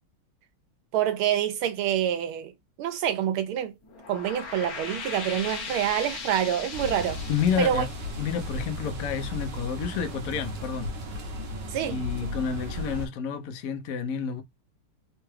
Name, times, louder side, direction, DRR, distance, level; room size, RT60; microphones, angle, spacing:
voice 1, 0.9-2.5 2.8-3.7 4.1-7.2 7.6-7.8 11.7-12.3, right 10 dB, 80° right, 1.6 m, -27 dB
sound 1, 3.8-9.1, left 5 dB, 55° left, 1.2 m, -38 dB
sound 2, 6.7-13.1, left 1 dB, 65° right, 1.3 m, -35 dB
voice 2, 7.3-7.9 8.2-10.9 11.8-14.4, left 7 dB, 85° left, 0.7 m, -29 dB
3.8 x 2.3 x 3.1 m
omnidirectional pair, 2.3 m